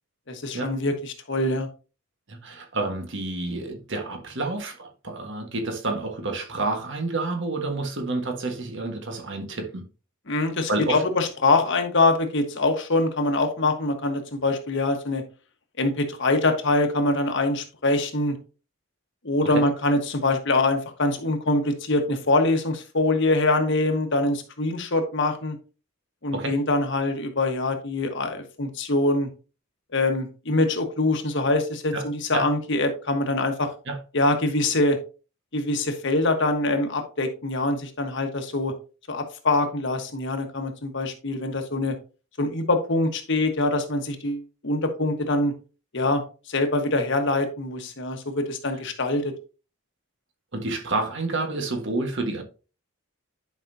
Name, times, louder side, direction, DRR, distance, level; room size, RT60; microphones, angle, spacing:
voice 1, 0.3-1.7 10.3-15.2 15.8-18.4 19.2-25.6 26.2-29.3 29.9-33.7 34.1-35.0 35.5-38.7 39.1-41.9 42.4-45.5 45.9-46.2 46.5-49.3, left 2 dB, 55° left, 1.3 m, -24 dB
voice 2, 2.3-9.8 10.7-11.0 19.5-19.6 26.3-26.6 31.9-32.0 32.3-32.5 33.9-34.0 50.5-52.4, right 2 dB, 55° right, 1.5 m, -29 dB
10.5 x 5.4 x 2.7 m
head